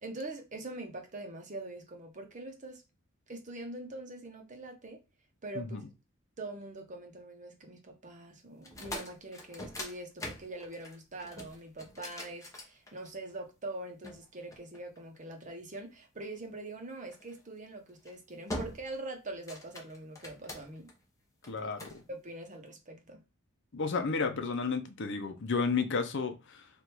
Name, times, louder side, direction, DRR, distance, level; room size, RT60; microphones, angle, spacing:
voice 1, 0.0-2.8 3.3-5.0 5.4-5.8 6.4-20.9 21.6-23.2, right 2 dB, 35° right, 0.9 m, -43 dB
voice 2, 5.5-5.9 21.5-22.0 23.7-26.7, left 4 dB, 60° left, 0.7 m, -32 dB
sound 1, 8.6-13.3 14.0-15.3 17.1-17.4 17.9-18.1 18.5-19.0 19.3-20.9 21.4-22.0, left 1 dB, 15° left, 0.9 m, -43 dB
3.4 x 2.5 x 4.4 m
head